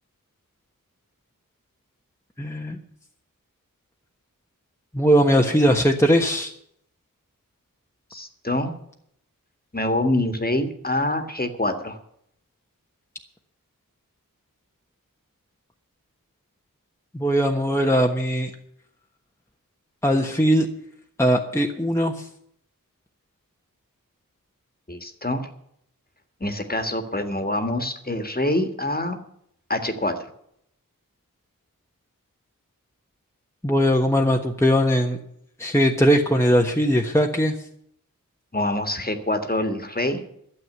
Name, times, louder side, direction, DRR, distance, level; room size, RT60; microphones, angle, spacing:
voice 1, 2.4-2.8 4.9-6.5 17.1-18.5 20.0-20.7 21.2-22.3 33.6-35.2 35.6-37.5, equal, 10° left, 2 dB, 1.3 m, -20 dB
voice 2, 8.1-8.7 9.7-12.0 24.9-25.5 26.4-29.2 29.7-30.2 38.5-40.2, left 1 dB, 25° left, 7 dB, 1.8 m, -25 dB
12.5 x 7.7 x 9.6 m, 0.71 s
wide cardioid pair, 60°, 34 cm